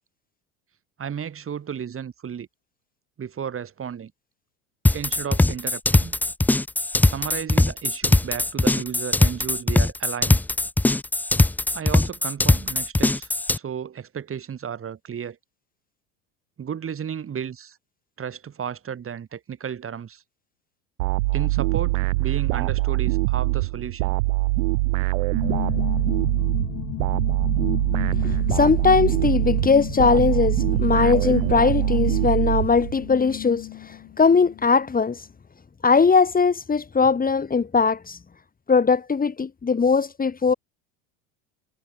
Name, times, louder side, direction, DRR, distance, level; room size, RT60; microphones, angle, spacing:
voice 1, 1.0-2.5 3.2-4.1 4.9-6.2 7.0-10.4 11.7-15.4 16.6-17.8 18.2-20.2 21.3-24.1, right 8 dB, 35° right, 5.9 m, -33 dB
sound 1, 4.9-13.6, left 2 dB, 5° left, 0.5 m, -20 dB
sound 2, 21.0-33.2, right 22 dB, 75° right, 1.8 m, -23 dB
sound 3, 25.3-34.8, left 18 dB, 55° left, 3.3 m, -33 dB
voice 2, 28.2-35.2 35.8-38.2 38.7-40.5, left 5 dB, 20° left, 3.1 m, -20 dB
hypercardioid pair, 85°, 39 cm